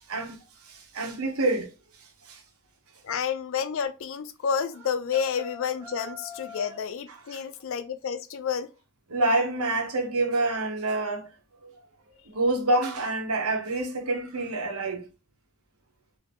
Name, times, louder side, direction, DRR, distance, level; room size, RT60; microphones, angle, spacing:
voice 1, 0.7-1.7 2.3-2.4 7.3-7.4 9.1-11.3 11.6-11.7 12.3-15.0, right 2 dB, 80° right, 0.8 m, -27 dB
voice 2, 3.0-8.7, left 7 dB, 60° left, 0.4 m, -30 dB
sound 1, 4.7-6.9, left 2 dB, 15° right, 0.8 m, -44 dB
2.6 x 2.5 x 3.4 m
head